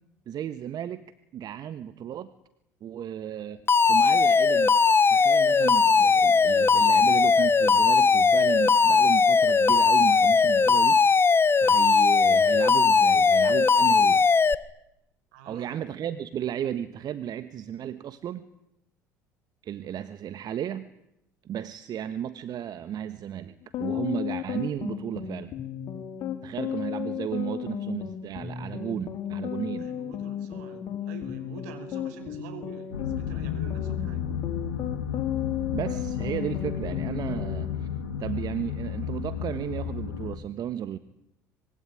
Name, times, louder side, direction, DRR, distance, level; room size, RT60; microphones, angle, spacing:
voice 1, 0.3-1.0 1.3-2.3 2.8-3.6 3.9-4.8 5.1-11.0 11.6-14.4 15.5-18.5 19.6-20.9 21.4-25.5 26.4-29.9 35.7-37.9 38.2-41.0, right 10 dB, 50° right, 12 dB, 1.4 m, -34 dB
Alarm, 3.7-14.5, left 5 dB, 25° left, 1.3 m, -19 dB
voice 2, 15.3-15.7 29.8-34.2, right 4 dB, 70° right, 8 dB, 5.4 m, -45 dB
sound 1, 23.6-37.6, left 10 dB, 50° left, 4.6 m, -34 dB
sound 2, 32.9-40.4, left 8 dB, 85° left, 2.1 m, -32 dB
25.0 x 22.5 x 10.0 m, 0.83 s
hypercardioid pair, 65°, 9 cm